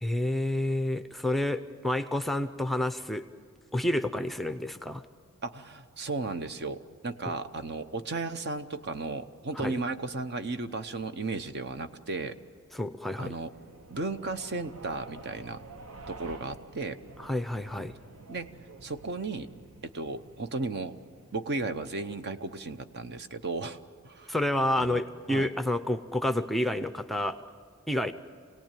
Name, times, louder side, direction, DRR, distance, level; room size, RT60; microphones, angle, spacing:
voice 1, 0.0-3.3 3.7-5.0 7.3-7.4 9.6-9.8 12.7-13.3 17.2-17.9 24.3-27.4 27.9-28.1, left 1 dB, ahead, 9 dB, 0.6 m, -29 dB
voice 2, 5.4-12.4 13.2-13.5 13.9-15.6 16.1-17.0 18.3-18.5 18.8-19.5 19.8-20.9 21.3-23.8 24.0-24.3 24.8-25.0 25.3-25.5, right 3 dB, 50° right, 10 dB, 0.9 m, -35 dB
sound 1, 13.5-21.7, right 2 dB, 70° right, 1.2 m, -49 dB
26.5 x 18.5 x 9.1 m, 2.1 s
head